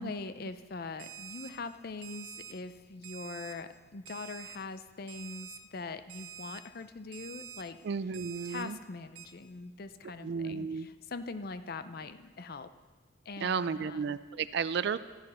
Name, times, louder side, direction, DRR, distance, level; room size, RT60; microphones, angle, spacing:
voice 1, 0.0-7.8 8.4-12.7 13.3-14.0, left 3 dB, 50° left, 11 dB, 0.5 m, -42 dB
Alarm, 1.0-1.5 2.0-2.5 3.0-3.5 4.1-4.6 5.1-5.6 6.1-6.6 7.1-7.6 8.1-8.6 9.2-9.3, right 9 dB, 80° right, 1.2 m, -46 dB
voice 2, 7.8-8.8 10.0-10.9 13.4-15.0, right 6 dB, 60° right, 15 dB, 0.4 m, -33 dB
14.0 x 10.5 x 4.3 m, 1.4 s
head